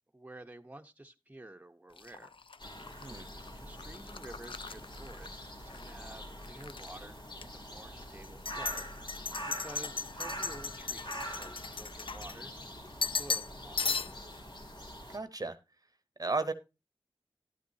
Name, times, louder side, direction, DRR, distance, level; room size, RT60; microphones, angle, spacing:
voice 1, 0.1-2.3 3.6-8.9 9.6-14.2, right 1 dB, 15° right, 5 dB, 1.0 m, -51 dB
sound 1, 2.0-5.9 6.2-6.9 7.4-7.5 8.2-12.6 13.0-13.5 13.8-14.4, left 4 dB, 75° left, 0.5 m, -37 dB
sound 2, 2.6-15.2, equal, 60° left, 2.6 m, -44 dB
voice 2, 15.1-15.6 16.2-16.5, right 3 dB, 45° right, 11 dB, 0.9 m, -33 dB
12.0 x 9.4 x 2.7 m, 0.28 s
wide cardioid pair, 60°, 9 cm